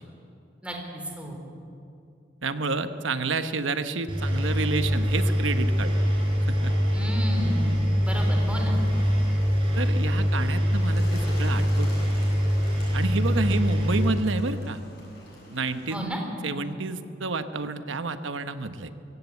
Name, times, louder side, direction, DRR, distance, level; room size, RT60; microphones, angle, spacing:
voice 1, 0.6-1.4 6.9-7.8 8.0-8.7 15.9-16.2, equal, 5° right, 2 dB, 3.5 m, -33 dB
voice 2, 2.4-5.9 6.5-6.7 9.7-12.1 12.9-14.8 15.5-16.1 16.4-18.9, right 3 dB, 80° right, 10 dB, 1.1 m, -29 dB
Engine, 4.1-14.1, equal, 30° right, 5.5 m, -24 dB
Bird, 8.4-16.0, left 1 dB, 55° left, 7.5 m, -47 dB
23.0 x 16.0 x 8.4 m, 2.6 s
head